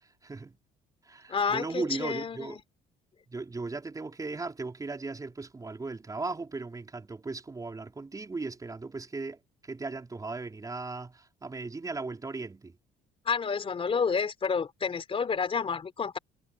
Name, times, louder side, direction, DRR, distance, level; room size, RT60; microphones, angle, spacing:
voice 1, 0.2-0.6 1.0-2.6 3.3-12.7, right 3 dB, 20° right, 4.7 m, -37 dB
voice 2, 1.3-2.6 13.3-16.2, left 5 dB, 35° left, 3.8 m, -29 dB
cardioid pair, 110°, 17 cm